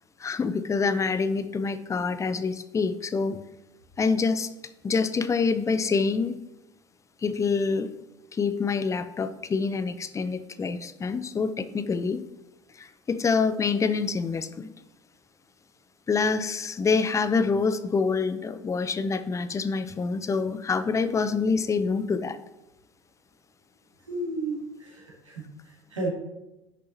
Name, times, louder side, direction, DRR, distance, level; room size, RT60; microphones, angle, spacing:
voice 1, 0.2-3.4 4.0-4.5 4.8-6.4 7.2-7.9 8.3-12.2 12.7-14.7 16.1-22.4, left 4 dB, 20° left, 12 dB, 0.6 m, -26 dB
voice 2, 24.1-26.1, right 2 dB, 85° right, -5 dB, 2.8 m, -33 dB
10.5 x 6.4 x 2.8 m, 0.95 s
figure-of-eight pair, 70°, 16 cm